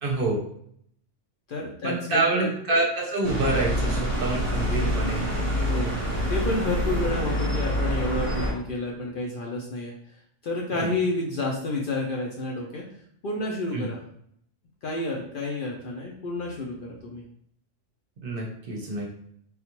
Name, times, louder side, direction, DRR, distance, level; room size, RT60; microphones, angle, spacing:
voice 1, 0.0-0.4 1.8-5.3 10.7-10.9 13.7-13.9 18.2-19.2, right 2 dB, 55° right, -1 dB, 0.7 m, -27 dB
voice 2, 1.5-2.5 5.7-5.9 6.3-9.9 10.4-12.8 13.2-14.0 14.8-16.8 17.0-17.2, left 2 dB, 55° left, -2 dB, 0.6 m, -30 dB
sound 1, 3.2-8.5, equal, 15° right, 0.9 m, -26 dB
3.5 x 2.3 x 2.9 m, 0.68 s
omnidirectional pair, 1.3 m